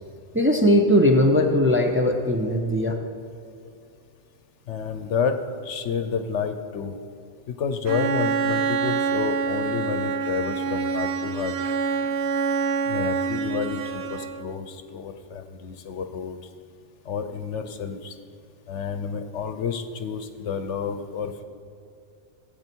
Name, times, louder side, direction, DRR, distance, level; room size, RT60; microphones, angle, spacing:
voice 1, 0.3-3.0, equal, 10° right, 1 dB, 0.7 m, -19 dB
voice 2, 4.7-7.0 7.5-11.5 12.9-16.4 17.0-18.2 18.7-21.4, left 6 dB, 70° left, 8 dB, 1.0 m, -30 dB
Bowed string instrument, 7.8-14.6, right 5 dB, 60° right, 0.8 m, -26 dB
16.5 x 8.1 x 4.6 m, 2.4 s
omnidirectional pair, 1.3 m